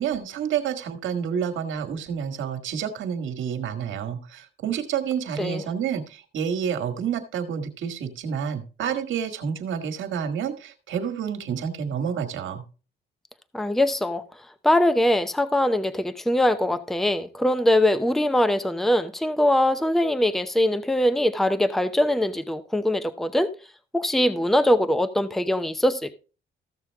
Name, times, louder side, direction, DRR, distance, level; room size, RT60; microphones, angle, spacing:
voice 1, 0.0-12.6, right 8 dB, 75° right, 1.7 m, -29 dB
voice 2, 13.5-14.2 14.6-23.5 23.9-26.1, left 1 dB, ahead, 0.7 m, -22 dB
14.5 x 6.8 x 3.5 m
cardioid pair, 90°, 20 cm